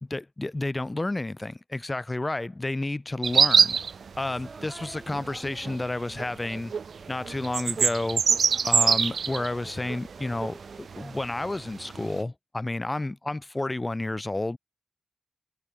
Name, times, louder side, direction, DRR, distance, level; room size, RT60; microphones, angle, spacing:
voice 1, 0.1-3.8 4.2-6.7 7.1-8.2 8.6-14.6, left 2 dB, 20° left, 4.5 m, -31 dB
sound 1, 3.2-5.9 6.2-12.2, right 6 dB, 65° right, 1.4 m, -25 dB
sound 2, 4.2-7.6 8.4-11.2, right 3 dB, 35° right, 4.9 m, -50 dB
wide cardioid pair, 135°, 0 cm